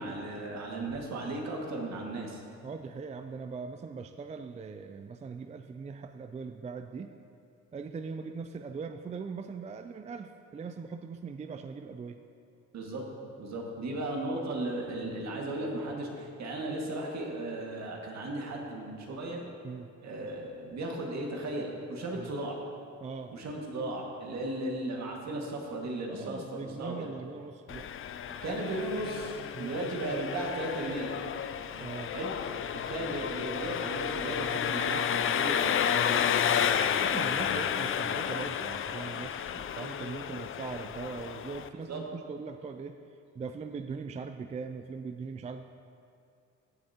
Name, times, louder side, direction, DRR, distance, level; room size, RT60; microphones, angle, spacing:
voice 1, 0.0-2.4 12.7-13.1 13.4-19.4 20.0-22.6 23.3-27.1 28.4-31.2 32.1-32.3 32.7-36.3 41.9-42.0, right 1 dB, 60° right, -1 dB, 1.9 m, -36 dB
voice 2, 2.6-7.1 7.7-12.2 19.6-19.9 22.1-22.3 23.0-23.4 26.1-27.9 29.5-29.8 31.8-32.2 37.0-43.0 43.3-45.6, right 5 dB, 25° right, 7 dB, 0.3 m, -40 dB
Engine, 27.7-41.7, left 8 dB, 45° left, 0.4 m, -31 dB
15.5 x 7.7 x 2.9 m, 2.5 s
cardioid pair, 90°, 30 cm